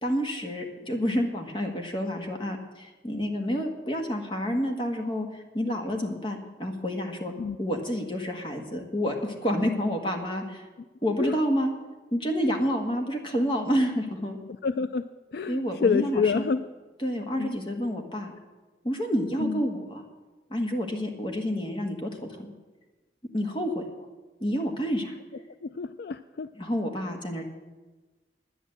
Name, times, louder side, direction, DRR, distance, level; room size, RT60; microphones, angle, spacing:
voice 1, 0.0-10.6 11.0-11.7 12.1-14.4 15.5-16.4 17.0-18.3 18.8-20.0 20.5-22.5 23.3-23.8 24.4-25.2 26.5-27.5, equal, 30° left, 3 dB, 1.7 m, -29 dB
voice 2, 14.6-15.1 15.3-16.6 17.4-17.6 19.4-19.6 25.6-26.5, left 5 dB, 60° left, 12 dB, 0.4 m, -27 dB
11.0 x 9.8 x 7.8 m, 1.2 s
head